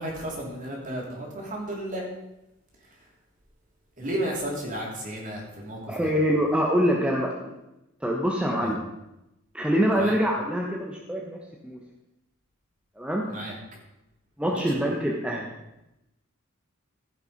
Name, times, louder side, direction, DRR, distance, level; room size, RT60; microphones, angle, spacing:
voice 1, 0.0-2.0 4.0-6.1 8.6-8.7 10.0-10.2 13.3-13.5 14.5-14.9, right 1 dB, 40° right, -2 dB, 3.0 m, -33 dB
voice 2, 5.9-7.5 8.0-8.8 9.5-11.8 13.0-13.2 14.4-15.5, equal, 5° right, -1 dB, 1.0 m, -25 dB
15.0 x 5.8 x 5.1 m, 0.92 s
head